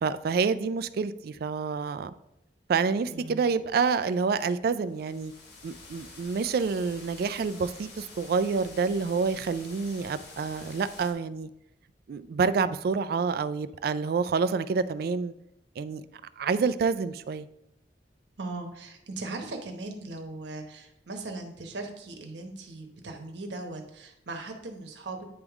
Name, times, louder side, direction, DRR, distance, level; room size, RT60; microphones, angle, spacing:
voice 1, 0.0-2.1 2.7-5.3 5.6-11.5 12.1-15.3 15.8-16.0 16.4-17.5, right 5 dB, 60° right, 13 dB, 0.3 m, -28 dB
voice 2, 3.0-3.4 18.4-25.2, right 2 dB, 85° right, 4 dB, 1.0 m, -39 dB
sound 1, 4.9-11.1, left 3 dB, 65° left, 1.2 m, -48 dB
9.5 x 3.5 x 3.5 m, 0.82 s
head